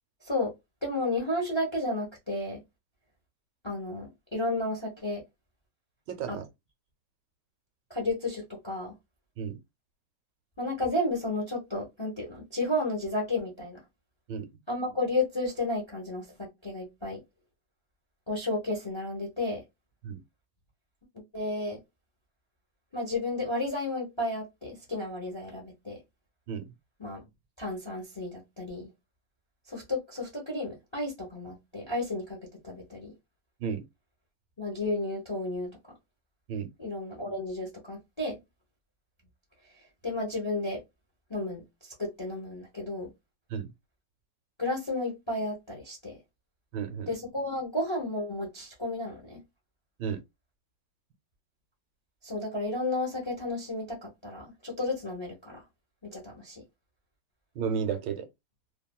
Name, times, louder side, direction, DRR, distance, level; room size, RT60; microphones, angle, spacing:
voice 1, 0.2-0.5 0.8-2.6 3.6-5.2 6.3-6.4 7.9-8.9 10.6-13.8 14.7-17.2 18.3-19.6 21.3-21.8 22.9-26.0 27.0-27.2 27.6-28.9 29.7-32.4 32.6-33.1 34.6-35.7 36.8-38.4 40.0-40.8 41.3-43.1 44.6-46.2 47.1-49.4 52.2-55.6 56.0-56.6, left 2 dB, 25° left, 0.6 m, -32 dB
voice 2, 6.1-6.4 9.4-9.6 14.3-14.5 20.0-20.2 26.5-26.7 33.6-33.8 36.5-36.7 43.5-43.7 46.7-47.1 50.0-50.2 57.6-58.3, right 7 dB, 80° right, 1.2 m, -32 dB
2.8 x 2.5 x 2.2 m
omnidirectional pair, 1.9 m